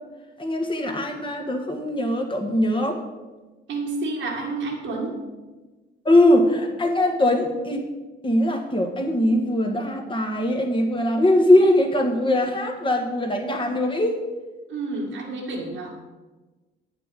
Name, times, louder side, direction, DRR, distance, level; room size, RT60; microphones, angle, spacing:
voice 1, 0.4-3.0 6.1-7.9 8.2-14.2, left 1 dB, 25° left, 3 dB, 1.8 m, -21 dB
voice 2, 3.7-5.2 14.7-16.0, right 3 dB, 80° right, -5 dB, 2.0 m, -30 dB
8.8 x 6.1 x 7.5 m, 1.2 s
cardioid pair, 90°, 20 cm